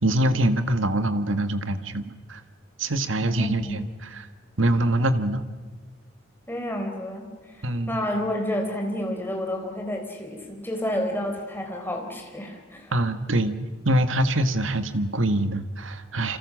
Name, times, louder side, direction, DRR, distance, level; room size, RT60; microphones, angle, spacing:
voice 1, 0.0-2.4 2.8-3.8 4.2-4.3 4.6-5.4 7.6-7.9 12.9-13.6 13.8-16.4, right 1 dB, 80° right, 9 dB, 1.7 m, -24 dB
voice 2, 3.2-3.8 6.5-12.9, left 1 dB, 10° left, 2 dB, 4.1 m, -30 dB
28.0 x 26.5 x 6.4 m, 1.4 s
head